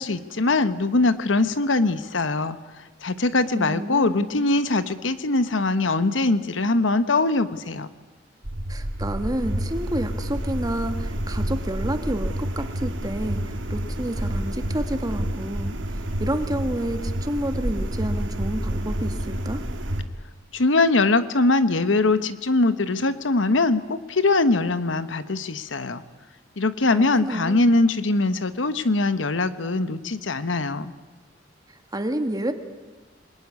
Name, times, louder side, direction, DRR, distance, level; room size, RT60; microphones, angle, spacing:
voice 1, 0.0-2.6 3.0-7.9 20.5-26.0 26.6-30.9, left 2 dB, 80° left, 12 dB, 1.1 m, -22 dB
voice 2, 3.5-4.5 8.7-15.8 16.2-19.6 26.9-27.6 31.9-32.5, right 1 dB, 20° right, 7 dB, 1.7 m, -29 dB
sound 1, 8.4-20.0, right 1 dB, 85° right, 2.2 m, -29 dB
27.0 x 21.0 x 9.7 m, 1.3 s
head